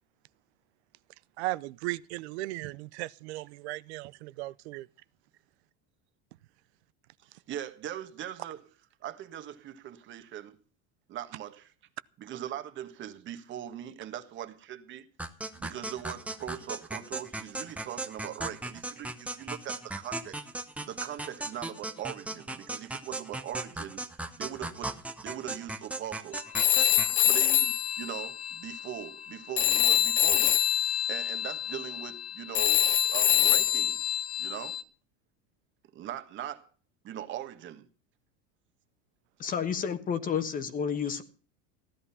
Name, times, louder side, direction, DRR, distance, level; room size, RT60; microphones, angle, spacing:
voice 1, 1.4-4.9 27.0-27.3, right 19 dB, 90° right, 0.7 m, -37 dB
voice 2, 7.2-8.6 9.0-10.6 11.1-11.7 12.2-15.1 15.6-20.4 20.8-24.1 24.3-25.0 25.2-26.4 27.2-34.0 34.4-34.8 35.9-36.7 37.0-37.9 41.1-41.2, right 11 dB, 35° right, 1.5 m, -41 dB
sound 1, 15.2-27.2, right 2 dB, 5° right, 0.8 m, -38 dB
Telephone, 26.5-29.3 29.6-34.8, left 11 dB, 75° left, 1.3 m, -26 dB
voice 3, 39.4-41.2, left 7 dB, 25° left, 1.3 m, -30 dB
15.5 x 11.5 x 5.6 m
supercardioid pair, 150°, 32 cm